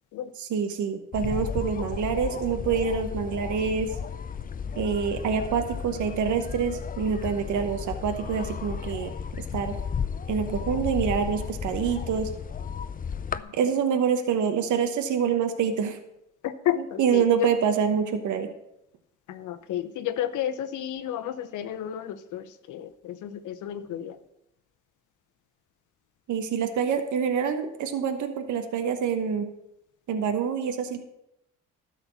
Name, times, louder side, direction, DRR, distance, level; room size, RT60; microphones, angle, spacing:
voice 1, 0.4-3.9 4.7-9.1 9.5-9.8 10.3-12.3 13.5-16.0 17.0-18.5 26.3-29.5 30.1-31.0, right 7 dB, 75° right, 7 dB, 1.1 m, -26 dB
sound 1, 1.1-13.4, left 6 dB, 30° left, 0.5 m, -34 dB
voice 2, 16.4-17.5 19.3-24.2, left 11 dB, 80° left, 11 dB, 0.8 m, -32 dB
12.5 x 4.4 x 7.1 m, 0.81 s
cardioid pair, 90°, 30 cm